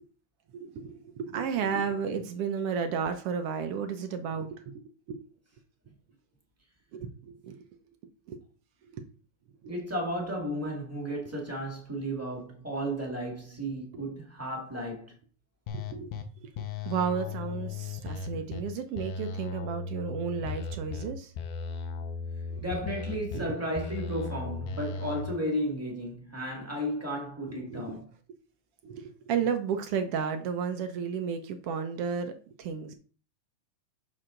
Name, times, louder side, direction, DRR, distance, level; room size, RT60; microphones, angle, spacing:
voice 1, 0.5-4.8 5.1-5.2 6.9-7.6 8.3-8.4 8.9-9.0 15.7-16.5 16.8-21.3 23.3-23.5 27.5-27.9 28.8-32.9, right 6 dB, 75° right, 1.4 m, -33 dB
voice 2, 9.7-15.1 18.3-18.4 22.6-28.0, equal, 5° right, 1.3 m, -34 dB
sound 1, 15.7-16.2 16.6-18.6 19.0-21.1 21.4-23.4 23.8-25.2, left 5 dB, 90° left, 2.4 m, -36 dB
7.4 x 6.4 x 3.8 m
omnidirectional pair, 3.5 m